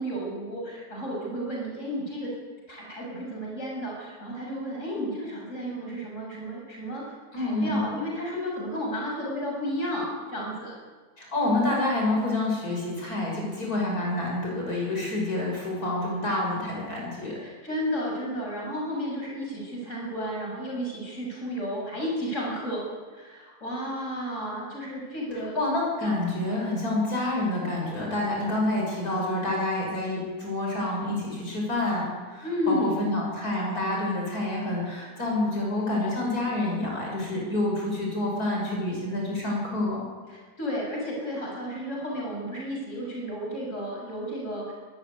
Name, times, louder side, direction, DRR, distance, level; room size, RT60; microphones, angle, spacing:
voice 1, 0.0-2.3 2.7-7.0 7.4-10.7 17.4-22.9 23.1-25.6 32.4-33.0 40.3-44.7, equal, 50° left, -2 dB, 7.1 m, -32 dB
voice 2, 7.3-7.9 11.2-17.4 25.5-40.0, left 2 dB, 75° left, -2 dB, 6.7 m, -28 dB
23.0 x 15.0 x 9.7 m, 1.4 s
omnidirectional pair, 1.6 m